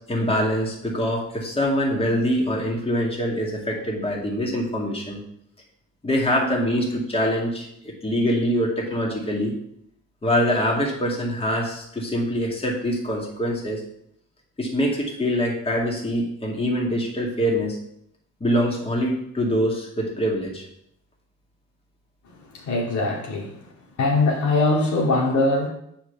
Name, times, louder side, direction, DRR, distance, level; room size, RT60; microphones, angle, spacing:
voice 1, 0.0-5.2 6.0-9.5 10.2-13.8 14.6-17.8 18.4-20.7, equal, 20° left, -2 dB, 2.2 m, -24 dB
voice 2, 22.3-23.6 24.0-25.7, left 2 dB, 75° left, -1 dB, 2.4 m, -22 dB
7.0 x 5.1 x 6.9 m, 0.74 s
cardioid pair, 90°, 30 cm